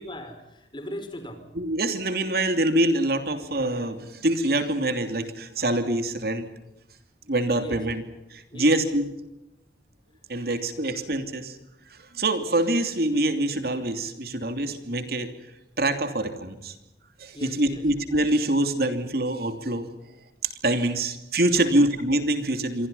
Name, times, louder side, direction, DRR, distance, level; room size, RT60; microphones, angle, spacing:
voice 1, 0.0-1.4 7.6-7.8 8.5-8.8 17.3-17.8 21.5-21.7, equal, 25° left, 8 dB, 4.8 m, -38 dB
voice 2, 1.5-6.5 7.3-8.0 8.3-9.1 10.3-11.6 12.1-15.3 15.8-16.7 17.2-19.9 20.6-22.9, right 1 dB, 60° right, 7 dB, 3.0 m, -25 dB
27.5 x 24.5 x 5.6 m, 0.90 s
head